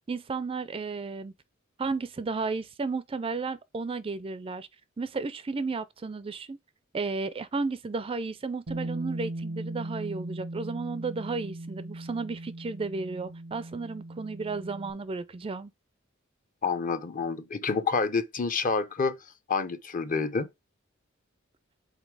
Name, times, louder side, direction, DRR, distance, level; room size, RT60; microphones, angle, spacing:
voice 1, 0.1-1.3 1.8-4.7 5.0-6.6 6.9-15.7, right 4 dB, 25° right, 0.4 m, -33 dB
Bass guitar, 8.7-14.9, right 1 dB, 90° right, 0.8 m, -38 dB
voice 2, 16.6-19.2 19.5-20.5, left 4 dB, 40° left, 0.7 m, -28 dB
5.2 x 3.9 x 4.7 m
head